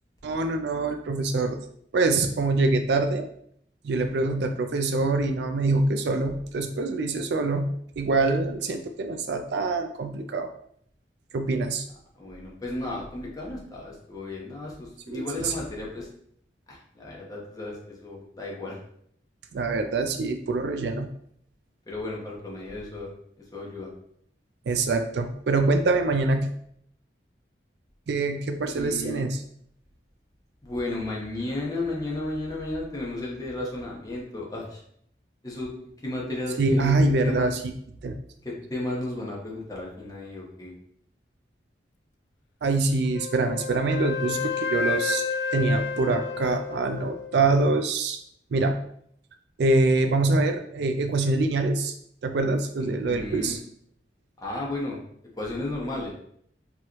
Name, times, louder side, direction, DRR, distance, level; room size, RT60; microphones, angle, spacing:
voice 1, 0.2-1.6 1.9-3.3 3.8-7.7 8.0-10.5 11.3-11.9 15.1-15.5 19.5-21.1 24.7-26.5 28.1-29.4 36.6-37.6 38.0-38.2 42.6-45.2 45.5-48.2 48.5-48.8 49.6-51.9 52.2-53.6, right 3 dB, 70° right, 6 dB, 0.4 m, -24 dB
voice 2, 12.1-16.1 16.7-18.8 21.9-23.1 23.5-23.9 28.7-29.2 30.6-34.8 35.4-35.7 36.0-36.9 37.2-37.6 38.4-40.7 52.8-53.6 54.4-55.0 55.4-56.1, left 2 dB, 20° left, -3 dB, 1.0 m, -33 dB
Wind instrument woodwind instrument, 43.1-47.3, left 5 dB, 80° left, 0.4 m, -30 dB
4.6 x 3.0 x 3.0 m, 0.68 s
head